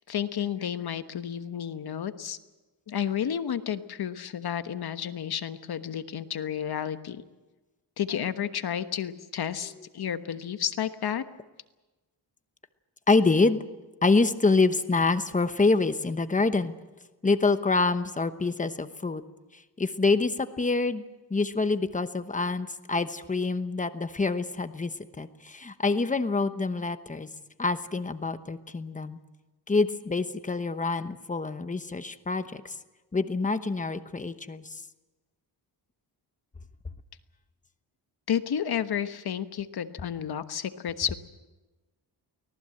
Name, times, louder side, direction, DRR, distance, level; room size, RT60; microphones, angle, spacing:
voice 1, 0.1-2.4 2.9-7.2 8.0-11.2 38.3-41.1, left 9 dB, 60° left, 10 dB, 1.3 m, -31 dB
voice 2, 13.1-13.6 14.0-16.7 17.2-19.2 19.5-21.0 21.3-27.3 27.6-29.2 29.7-32.8 33.1-34.8, left 3 dB, 20° left, 10 dB, 1.0 m, -26 dB
24.5 x 18.5 x 7.8 m, 1.2 s
wide cardioid pair, 150°, 42 cm